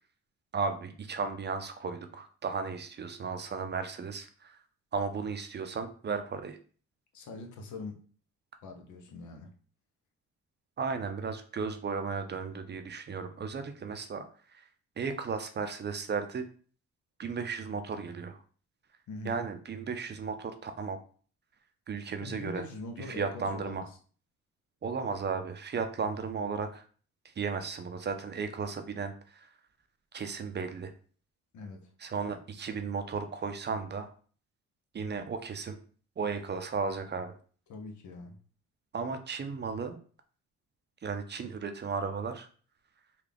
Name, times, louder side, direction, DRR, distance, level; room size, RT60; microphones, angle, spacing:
voice 1, 0.5-4.6 4.9-6.6 10.8-14.6 15.0-16.4 17.2-18.4 19.2-21.0 21.9-22.7 23.1-23.9 24.8-26.9 27.4-29.5 30.1-30.9 32.0-34.1 34.9-35.8 36.2-37.3 38.9-40.0 41.0-42.5, right 5 dB, 35° right, 0.5 m, -35 dB
voice 2, 7.1-8.0 8.6-9.5 19.1-19.4 22.2-23.8 31.5-31.9 37.7-38.4, left 3 dB, 70° left, 0.8 m, -42 dB
3.7 x 2.4 x 3.4 m
cardioid pair, 90°, 30 cm